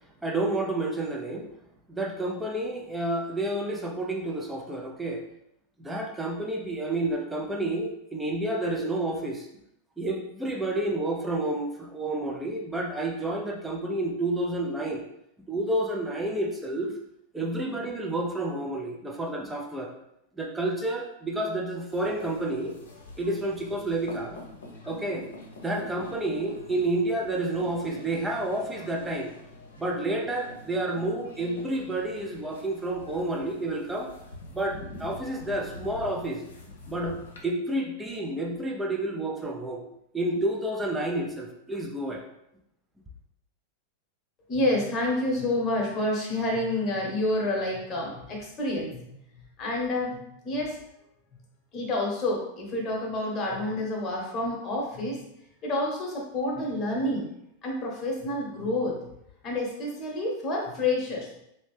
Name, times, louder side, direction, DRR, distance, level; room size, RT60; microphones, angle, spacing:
voice 1, 0.2-1.5 1.9-5.2 5.8-9.5 10.0-15.0 15.5-16.9 17.3-19.9 20.4-22.8 23.2-24.4 24.8-25.3 25.6-29.3 29.8-34.1 34.5-36.4 36.9-39.8 40.1-42.2, right 1 dB, 10° right, 0 dB, 0.6 m, -30 dB
sound 1, 21.9-37.4, left 2 dB, 65° left, 0.8 m, -46 dB
voice 2, 44.5-49.2 49.6-50.2 50.4-50.8 51.7-55.3 55.6-57.3 57.6-59.0 59.4-61.3, left 1 dB, 25° left, -1 dB, 1.1 m, -28 dB
3.0 x 2.8 x 3.3 m, 0.78 s
figure-of-eight pair, 90°, 0 cm